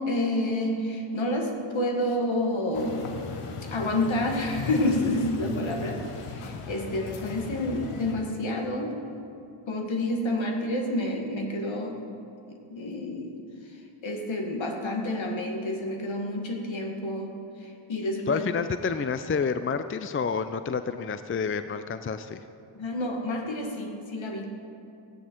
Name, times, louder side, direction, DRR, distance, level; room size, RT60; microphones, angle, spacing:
voice 1, 0.0-3.1 3.7-8.9 9.7-12.0 12.7-13.4 13.7-17.3 17.6-18.4 22.8-24.5, left 1 dB, 65° left, 2 dB, 2.0 m, -29 dB
sound 1, 2.7-8.1, left 4 dB, 90° left, 1.1 m, -37 dB
voice 2, 18.3-22.4, left 5 dB, 25° left, 11 dB, 0.5 m, -29 dB
15.0 x 9.8 x 4.6 m, 2.8 s
cardioid pair, 50°, 50 cm